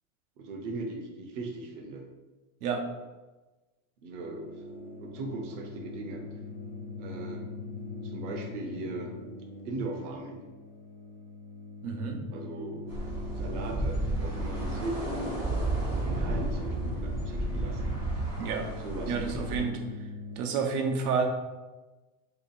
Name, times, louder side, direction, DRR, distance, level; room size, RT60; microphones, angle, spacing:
voice 1, 0.4-2.1 4.0-4.6 5.0-6.2 7.0-7.4 8.0-9.1 9.6-10.4 12.3-12.9 13.3-15.4 16.0-17.9 18.8-19.8, right 2 dB, 55° right, 2 dB, 0.8 m, -38 dB
sound 1, 4.2-20.4, left 3 dB, 55° left, 1.1 m, -42 dB
voice 2, 11.8-12.3 18.4-18.6 19.1-19.8 20.4-21.2, right 5 dB, 80° right, 3 dB, 0.8 m, -29 dB
sound 2, 12.9-19.6, right 2 dB, 10° right, 0.4 m, -32 dB
3.0 x 2.9 x 4.2 m, 1.2 s
supercardioid pair, 175°, 45 cm